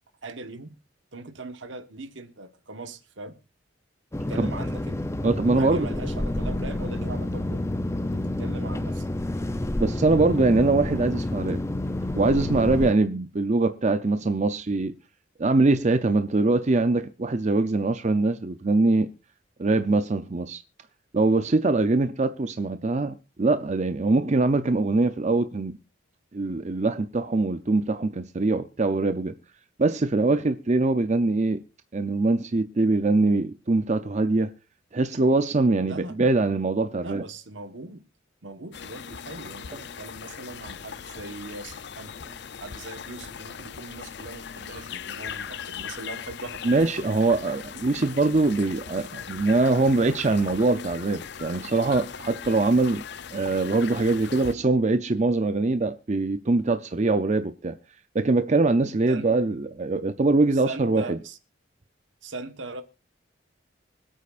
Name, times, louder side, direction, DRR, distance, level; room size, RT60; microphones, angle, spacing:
voice 1, 0.2-0.8 1.1-3.4 4.3-5.0 5.6-7.7 8.1-9.1 35.8-36.2 37.0-38.0 38.4-42.2 42.6-46.6 47.7-47.8 59.1-59.3 60.5-61.4 62.2-62.8, right 2 dB, 70° right, 1.3 m, -40 dB
sound 1, 4.1-12.9, left 1 dB, 15° left, 0.6 m, -29 dB
voice 2, 5.2-5.9 9.8-11.6 12.2-14.9 15.4-19.1 19.6-20.6 21.1-25.7 26.3-29.3 29.8-31.6 31.9-34.5 34.9-37.2 46.6-53.0 53.3-57.7 58.1-61.2, right 3 dB, 35° right, 0.6 m, -23 dB
sound 2, 38.7-54.5, left 7 dB, 60° left, 0.5 m, -39 dB
25.0 x 8.4 x 2.5 m
head